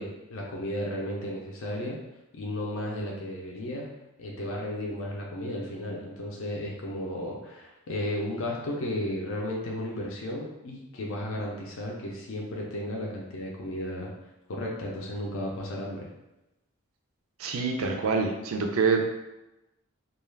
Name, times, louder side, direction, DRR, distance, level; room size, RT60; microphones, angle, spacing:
voice 1, 0.0-2.0 2.3-3.9 4.2-14.1 14.5-16.1, left 1 dB, 75° left, -2 dB, 0.5 m, -34 dB
voice 2, 17.4-19.0, right 5 dB, 85° right, 3 dB, 0.4 m, -26 dB
2.3 x 2.3 x 3.2 m, 0.97 s
head